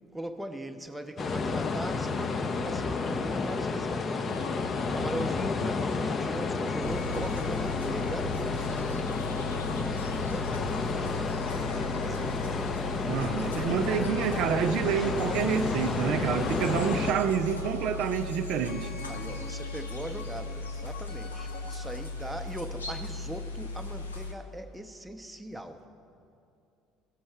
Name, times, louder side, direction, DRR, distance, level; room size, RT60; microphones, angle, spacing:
voice 1, 0.1-4.2 4.9-8.4 9.7-11.4 12.0-12.4 19.1-25.9, right 1 dB, 5° right, 0.7 m, -40 dB
sound 1, 1.2-17.1, left 4 dB, 35° left, 0.6 m, -31 dB
sound 2, 3.8-22.1, left 4 dB, 60° left, 1.0 m, -47 dB
sound 3, 6.8-24.3, left 3 dB, 80° left, 0.7 m, -38 dB
voice 2, 13.1-18.9, right 8 dB, 55° right, 0.4 m, -28 dB
15.5 x 6.3 x 4.5 m
figure-of-eight pair, 60°, 0 cm